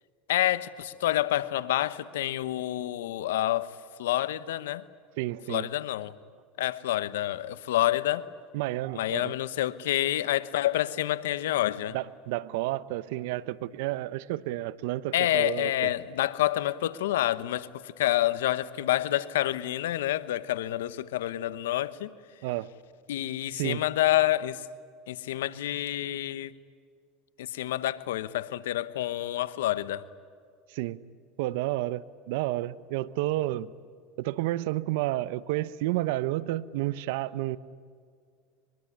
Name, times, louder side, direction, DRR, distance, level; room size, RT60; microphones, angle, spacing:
voice 1, 0.3-4.9 5.5-6.2 6.6-8.3 8.9-12.0 15.1-22.1 23.1-24.7 25.1-26.5 27.4-30.1, left 14 dB, 85° left, 16 dB, 1.0 m, -28 dB
voice 2, 5.2-5.7 8.5-9.3 11.9-15.9 22.4-22.7 23.5-23.8 30.7-31.0 31.4-33.7 34.2-37.6, right 16 dB, 75° right, 17 dB, 0.9 m, -31 dB
23.5 x 23.0 x 10.0 m, 2.1 s
supercardioid pair, 105°, 0 cm